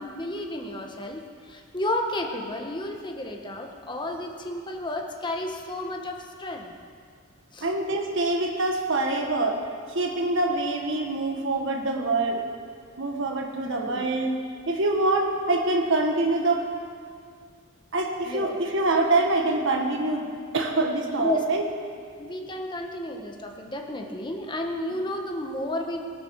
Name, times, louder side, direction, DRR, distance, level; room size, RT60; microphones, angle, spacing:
voice 1, 0.0-6.7 7.5-7.7 13.6-14.1 18.2-18.6 21.2-21.4 22.2-26.1, left 1 dB, 20° left, 2 dB, 1.4 m, -32 dB
voice 2, 7.6-9.6 10.0-12.4 13.0-14.3 14.7-16.6 17.9-20.3 20.5-21.6, right 2 dB, 60° right, 2 dB, 1.6 m, -25 dB
20.0 x 12.5 x 4.8 m, 2.1 s
head